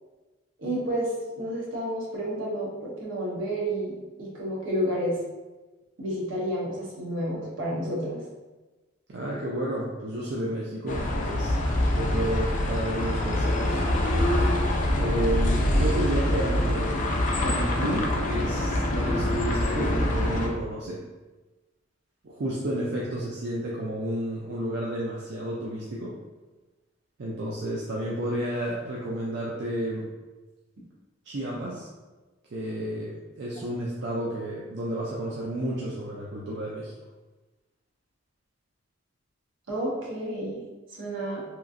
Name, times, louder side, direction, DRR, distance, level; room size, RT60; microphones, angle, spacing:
voice 1, 0.6-5.2 6.0-8.2 39.7-40.6 41.0-41.4, equal, 75° right, -5 dB, 0.9 m, -30 dB
voice 2, 9.1-11.6 12.0-13.8 14.9-17.0 17.4-21.0 22.2-26.1 27.2-30.1 31.3-31.9 32.5-36.9, right 1 dB, 55° right, -5 dB, 0.4 m, -31 dB
sound 1, 10.9-20.5, left 1 dB, 40° left, 0.4 m, -25 dB
2.9 x 2.4 x 2.5 m, 1.2 s
head